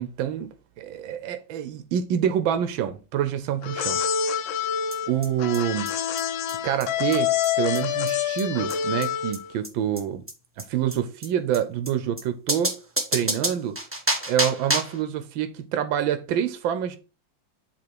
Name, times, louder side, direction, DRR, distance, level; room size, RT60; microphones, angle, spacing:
voice 1, 0.0-4.0 5.1-5.9 6.6-7.3 7.6-10.2 10.6-12.7 13.1-13.8 14.3-17.0, right 9 dB, 85° right, 1.5 m, -26 dB
sound 1, 3.6-9.5, left 9 dB, 80° left, 1.5 m, -27 dB
sound 2, 4.9-5.0 5.2-5.3 5.5-5.6 5.9-6.0 6.2-6.3 6.5-6.6 6.8-6.9 7.1-7.2 7.4-7.5 7.7-7.8 8.1-8.2 8.4-8.5 8.7-8.8 9.0-9.1 9.3-9.4 9.6-9.7 10.0-10.1 10.3-10.4 10.6-10.7 10.9-11.0 11.2-11.3 11.5-11.6 11.9-12.0 12.2-12.3 12.5-15.0, right 1 dB, 10° right, 0.7 m, -28 dB
7.7 x 3.7 x 4.6 m
omnidirectional pair, 2.1 m